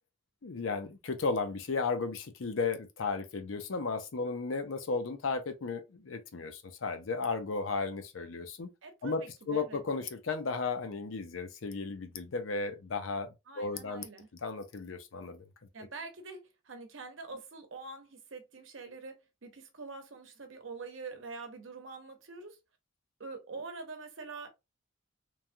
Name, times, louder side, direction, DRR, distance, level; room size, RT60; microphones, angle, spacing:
voice 1, 0.4-8.7 9.0-14.1 14.4-15.4, left 4 dB, 75° left, 0.6 m, -34 dB
voice 2, 8.8-9.8 13.5-14.3 15.7-22.6 23.2-24.5, right 4 dB, 75° right, 0.8 m, -45 dB
3.2 x 2.2 x 2.5 m
head